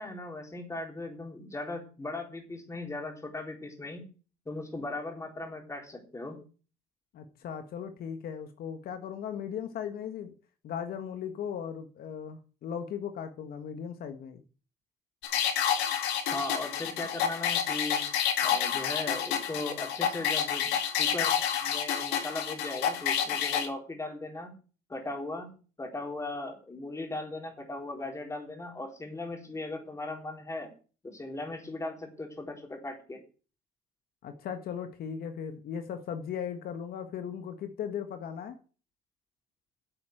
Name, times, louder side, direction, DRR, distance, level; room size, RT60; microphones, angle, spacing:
voice 1, 0.0-4.1 4.5-6.4 16.3-18.0 18.4-20.7 21.0-21.3 21.6-24.5 24.9-25.5 25.8-30.7 31.0-33.2, left 2 dB, 15° left, 3 dB, 3.9 m, -38 dB
voice 2, 7.1-10.3 10.6-14.4 34.2-38.6, left 8 dB, 65° left, 8 dB, 1.5 m, -37 dB
sound 1, 15.2-23.7, left 8 dB, 90° left, 2.4 m, -29 dB
9.7 x 8.1 x 7.8 m, 0.38 s
cardioid pair, 110°, 17 cm